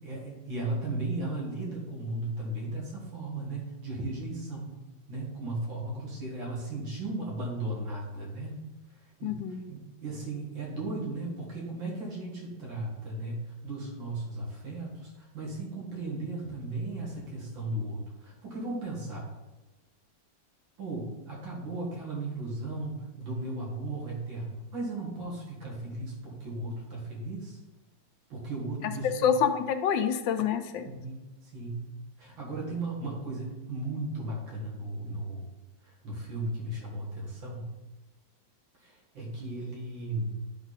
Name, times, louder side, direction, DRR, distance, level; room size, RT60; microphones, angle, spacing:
voice 1, 0.0-4.7 5.1-8.6 9.2-9.4 9.7-13.4 13.6-19.2 20.8-27.6 28.3-29.3 30.9-31.8 32.2-35.5 35.8-37.7 38.8-40.3, right 2 dB, 80° right, -4 dB, 2.6 m, -36 dB
voice 2, 9.2-9.6 28.8-28.9 29.2-30.9, left 8 dB, 75° left, 9 dB, 1.2 m, -27 dB
10.0 x 3.6 x 4.1 m, 1.1 s
omnidirectional pair, 2.1 m